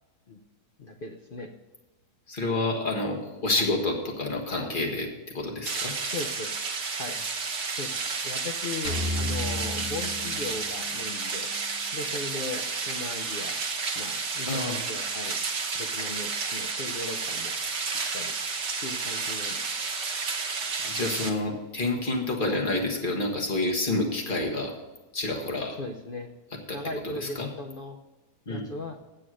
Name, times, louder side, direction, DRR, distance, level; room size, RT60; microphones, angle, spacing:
voice 1, 0.8-1.5 3.5-3.7 4.6-4.7 6.0-6.5 6.9-7.2 7.7-11.5 11.9-13.6 13.9-15.4 15.7-17.5 18.1-18.3 18.8-19.6 22.5-22.6 25.8-26.3 26.7-28.0 28.5-29.0, left 2 dB, 55° left, 4 dB, 0.6 m, -38 dB
voice 2, 2.3-5.1 5.3-5.9 14.5-14.8 20.8-24.7 25.1-25.7 26.7-26.8 27.2-27.5 28.5-28.7, left 2 dB, 30° left, 1 dB, 1.6 m, -28 dB
sound 1, 5.6-21.3, right 4 dB, 45° right, 1.2 m, -31 dB
sound 2, 8.8-11.1, left 2 dB, 80° left, 1.8 m, -33 dB
8.5 x 7.6 x 6.2 m, 1.1 s
omnidirectional pair, 1.7 m